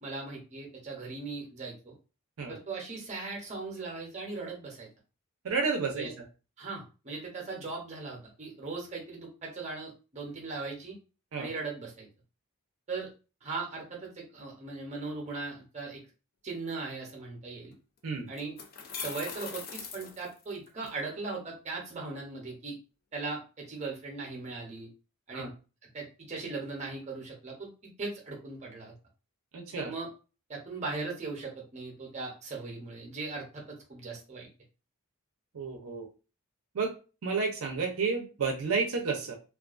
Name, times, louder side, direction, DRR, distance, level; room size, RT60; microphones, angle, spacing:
voice 1, 0.0-2.0 2.5-4.9 5.9-6.1 6.6-11.0 11.4-12.1 12.9-13.1 13.4-16.0 16.4-17.7 18.3-18.6 18.9-22.7 23.1-24.9 25.3-25.5 25.9-28.9 29.8-30.1 30.5-34.5, right 3 dB, 30° right, 0 dB, 0.7 m, -39 dB
voice 2, 5.4-6.1 11.3-11.5 18.0-18.3 25.3-25.5 29.5-29.9 35.5-36.1 36.7-36.9 37.2-39.4, right 4 dB, 70° right, 2 dB, 0.5 m, -31 dB
sound 1, 17.7-17.8 18.4-20.9, left 5 dB, 40° left, 0.3 m, -41 dB
2.4 x 2.2 x 2.4 m, 0.33 s
head